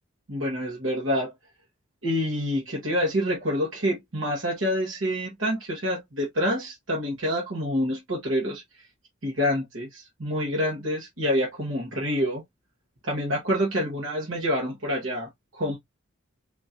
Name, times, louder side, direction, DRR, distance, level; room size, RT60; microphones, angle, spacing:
voice 1, 0.3-1.3 2.0-8.6 9.2-12.4 13.0-15.8, equal, 75° right, 1.3 m, -27 dB
3.7 x 2.9 x 2.7 m
head